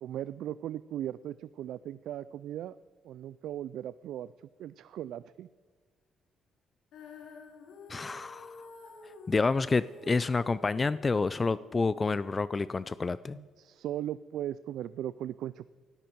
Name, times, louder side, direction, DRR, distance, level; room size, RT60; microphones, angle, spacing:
voice 1, 0.0-2.8 3.0-4.3 4.6-5.5 13.3-15.7, right 11 dB, 80° right, 16 dB, 0.3 m, -38 dB
Female singing, 6.9-13.1, left 3 dB, 85° left, 2.2 m, -51 dB
voice 2, 7.9-8.7 9.3-13.4, left 4 dB, 30° left, 16 dB, 0.4 m, -29 dB
17.5 x 13.5 x 4.6 m, 1.5 s
cardioid pair, 90°, 0 cm